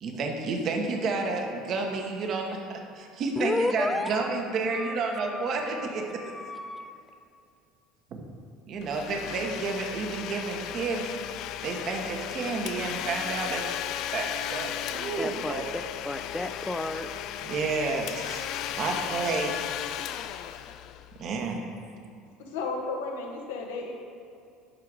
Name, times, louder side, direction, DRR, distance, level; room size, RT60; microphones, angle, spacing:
voice 1, 0.0-6.1 8.1-8.2 8.7-11.1 11.6-13.7 14.1-15.7 17.4-18.5 18.7-19.6 21.2-21.6, right 4 dB, 50° right, 2 dB, 1.2 m, -30 dB
voice 2, 3.4-4.4 4.7-6.9 15.2-17.1, left 2 dB, 10° left, 10 dB, 0.6 m, -33 dB
Domestic sounds home sounds, 8.8-21.4, left 11 dB, 60° left, 0.3 m, -35 dB
voice 3, 22.4-23.9, left 3 dB, 75° left, 1 dB, 1.3 m, -33 dB
11.5 x 4.7 x 4.8 m, 2.6 s
hypercardioid pair, 70°, 0 cm